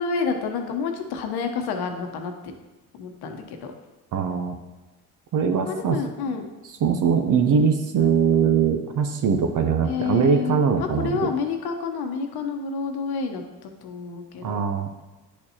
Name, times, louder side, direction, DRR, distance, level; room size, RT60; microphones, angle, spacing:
voice 1, 0.0-2.5 2.9-3.7 5.7-6.5 9.8-14.6, left 5 dB, 70° left, 5 dB, 1.0 m, -29 dB
voice 2, 4.1-4.6 5.3-6.0 6.8-11.1 14.4-14.9, right 6 dB, 50° right, 5 dB, 0.7 m, -21 dB
9.9 x 4.2 x 2.8 m, 1.1 s
hypercardioid pair, 55°, 40 cm